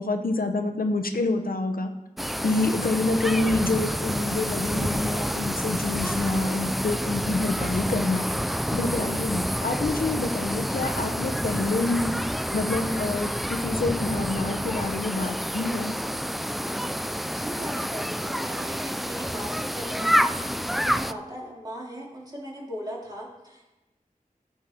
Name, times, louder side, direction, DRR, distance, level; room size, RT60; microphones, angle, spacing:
voice 1, 0.0-1.9 2.4-8.3 8.7-12.1 12.5-15.9, left 2 dB, 80° left, 6 dB, 0.9 m, -27 dB
sound 1, 2.2-21.1, equal, ahead, 0.3 m, -28 dB
voice 2, 17.2-23.7, equal, 25° right, -4 dB, 3.1 m, -39 dB
14.5 x 5.8 x 4.5 m, 1.0 s
wide cardioid pair, 60°, 15 cm